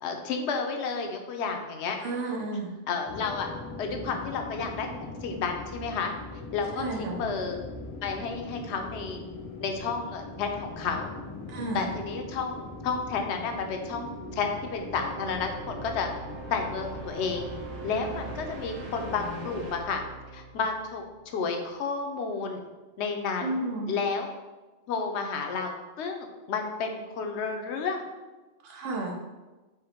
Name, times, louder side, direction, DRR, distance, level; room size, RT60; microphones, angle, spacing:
voice 1, 0.0-2.0 2.9-3.5 3.8-6.1 6.5-7.6 8.0-9.2 9.6-11.1 11.7-16.1 16.5-17.5 17.8-20.0 20.3-22.6 23.0-24.3 24.9-28.0, left 5 dB, 75° left, 4 dB, 0.9 m, -31 dB
voice 2, 2.0-2.7 6.8-7.2 11.5-11.9 23.4-23.9 28.6-29.2, right 2 dB, 85° right, 0 dB, 1.1 m, -32 dB
sound 1, 3.1-19.7, left 2 dB, 35° left, 0.6 m, -41 dB
sound 2, 14.0-21.7, right 4 dB, 50° right, 0.4 m, -44 dB
4.9 x 2.1 x 4.3 m, 1.2 s
omnidirectional pair, 1.2 m